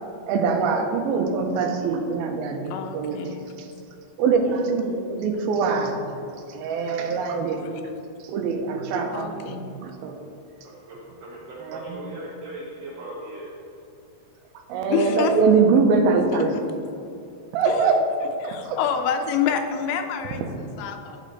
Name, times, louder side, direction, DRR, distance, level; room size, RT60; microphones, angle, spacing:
voice 1, 0.3-3.2 4.2-7.7 8.2-9.6 9.8-10.2 11.6-12.0 14.7-16.5 17.5-18.0 18.4-18.8, right 4 dB, 85° right, 4 dB, 2.5 m, -23 dB
voice 2, 2.7-3.5 6.9-8.0 9.1-9.9 14.9-15.4 16.3-16.7 17.7-18.0 18.4-21.2, left 8 dB, 85° left, 6 dB, 2.5 m, -29 dB
voice 3, 10.6-13.6, right 1 dB, 70° right, -5 dB, 2.3 m, -38 dB
11.5 x 5.0 x 4.0 m, 2.5 s
omnidirectional pair, 4.4 m